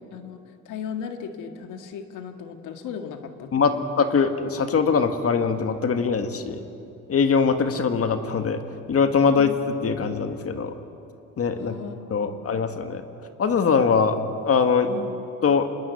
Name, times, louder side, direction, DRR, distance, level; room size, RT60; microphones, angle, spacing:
voice 1, 0.1-3.9 11.5-12.6 14.9-15.1, left 7 dB, 90° left, 6 dB, 1.9 m, -37 dB
voice 2, 3.5-6.6 7.1-8.6 8.9-10.7 11.4-11.8 12.1-13.0 13.4-14.2 14.5-14.9 15.4-15.7, left 5 dB, 50° left, 7 dB, 1.7 m, -22 dB
26.0 x 20.5 x 8.3 m, 2.7 s
cardioid pair, 90°, 30 cm